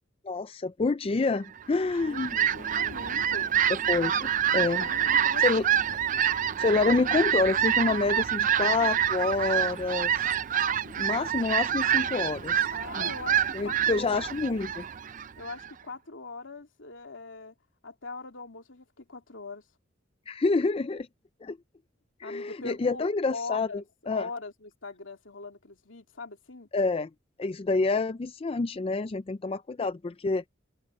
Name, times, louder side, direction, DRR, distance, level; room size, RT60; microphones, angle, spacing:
voice 1, 0.2-2.4 3.7-4.8 5.4-5.6 6.6-10.3 11.0-13.1 13.5-14.8 20.3-21.1 21.4-21.6 22.2-24.3 26.7-27.1 27.4-30.4, left 3 dB, 30° left, 0.4 m, -28 dB
voice 2, 1.7-3.5 4.6-5.8 10.8-11.2 12.7-14.3 15.4-17.5 17.8-19.6 22.2-23.8 24.1-26.7, left 3 dB, 80° left, 2.7 m, -42 dB
Fowl, 1.8-15.7, right 9 dB, 40° right, 0.5 m, -27 dB
head